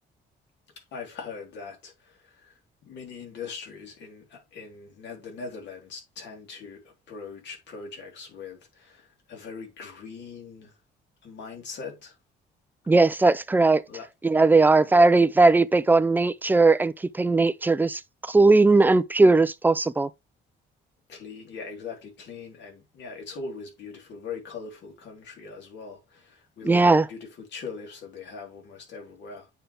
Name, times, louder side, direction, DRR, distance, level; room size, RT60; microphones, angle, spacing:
voice 1, 0.8-10.8 11.2-12.2 13.9-14.1 14.9-15.2 21.1-29.5, left 5 dB, 65° left, 3.8 m, -41 dB
voice 2, 12.9-13.8 14.2-18.0 18.3-20.1 26.6-27.1, right 3 dB, 10° right, 0.4 m, -18 dB
8.9 x 5.6 x 3.4 m
cardioid pair, 145°, 20 cm